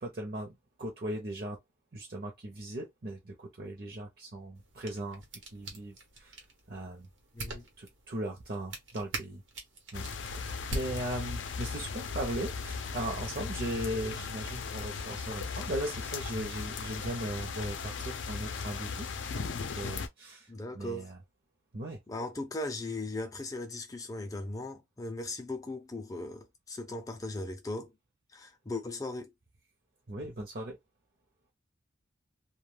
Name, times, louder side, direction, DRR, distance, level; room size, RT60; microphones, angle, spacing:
voice 1, 0.0-1.6 1.9-5.2 5.5-7.1 7.8-9.4 9.9-10.1 10.3-21.2 21.7-22.0 30.1-30.8, right 1 dB, 50° right, 0.7 m, -38 dB
sound 1, 4.5-11.7, right 1 dB, 85° right, 1.0 m, -43 dB
voice 2, 7.3-7.6 20.5-21.1 22.1-27.9 28.3-29.3, left 2 dB, 20° left, 0.5 m, -38 dB
sound 2, 9.9-20.1, left 5 dB, 80° left, 0.5 m, -37 dB
2.3 x 2.2 x 3.2 m
head